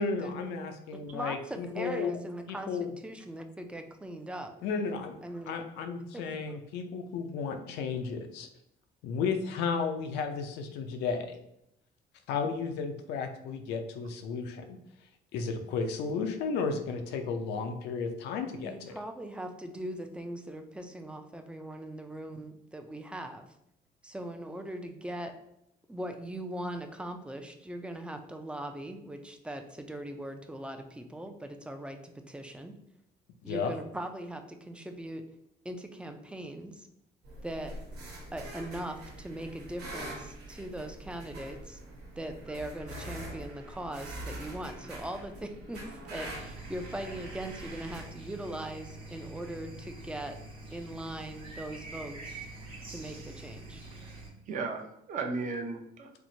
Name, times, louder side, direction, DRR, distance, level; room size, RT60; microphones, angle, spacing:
voice 1, 0.0-2.1 2.5-2.9 4.6-5.2 5.5-8.5 9.0-11.4 12.3-14.8 15.3-18.9 33.5-33.7, left 5 dB, 85° left, 6 dB, 0.5 m, -33 dB
voice 2, 0.9-4.5 5.2-5.6 6.1-6.6 18.6-23.5 24.0-25.3 25.9-32.7 33.4-35.2 35.6-36.9 37.4-37.8 38.3-41.8 42.2-50.4 50.7-52.4 52.9-53.8, right 1 dB, 5° right, 6 dB, 0.3 m, -40 dB
sound 1, 37.2-48.0, right 1 dB, 85° right, 1.1 m, -44 dB
sound 2, 46.2-54.3, right 2 dB, 35° right, 1.0 m, -46 dB
voice 3, 53.9-56.1, right 4 dB, 50° right, 3 dB, 0.6 m, -36 dB
4.4 x 2.0 x 2.6 m, 0.79 s
cardioid pair, 110°, 17 cm